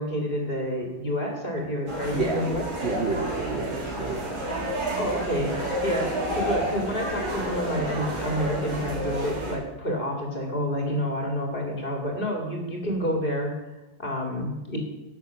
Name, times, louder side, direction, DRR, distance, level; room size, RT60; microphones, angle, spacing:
voice 1, 0.0-2.7 4.9-13.5 14.0-14.8, equal, 35° left, 1 dB, 2.6 m, -29 dB
sound 1, 1.9-9.5, right 1 dB, 75° right, 3.8 m, -30 dB
voice 2, 2.1-4.2 5.5-5.7, right 4 dB, 45° right, 3 dB, 1.2 m, -30 dB
11.5 x 6.7 x 7.2 m, 1.1 s
omnidirectional pair, 1.7 m